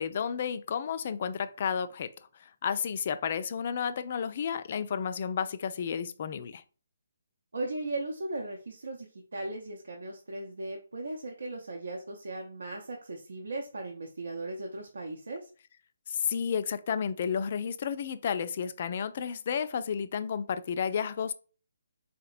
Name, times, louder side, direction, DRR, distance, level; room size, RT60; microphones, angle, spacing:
voice 1, 0.0-2.1 2.4-6.6 16.1-21.3, left 7 dB, 45° left, 0.3 m, -32 dB
voice 2, 7.5-15.5, right 2 dB, 70° right, 0.6 m, -37 dB
3.8 x 2.9 x 2.4 m
figure-of-eight pair, 145°, 0 cm